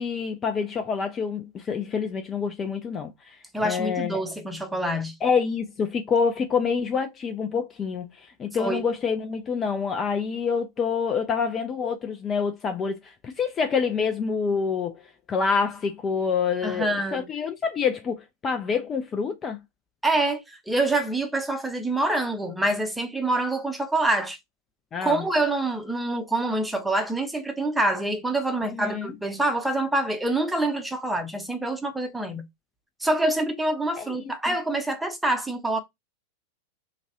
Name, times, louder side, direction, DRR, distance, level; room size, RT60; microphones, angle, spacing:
voice 1, 0.0-4.2 5.2-15.0 15.3-19.6 24.9-25.2 28.7-29.1 34.0-34.2 34.5-34.6, left 5 dB, 25° left, 0.4 m, -27 dB
voice 2, 3.5-5.1 8.6-8.8 16.6-17.3 20.0-24.4 25.0-32.5 33.0-35.8, right 2 dB, 5° right, 0.7 m, -26 dB
2.9 x 2.2 x 2.8 m
figure-of-eight pair, 90°, 0 cm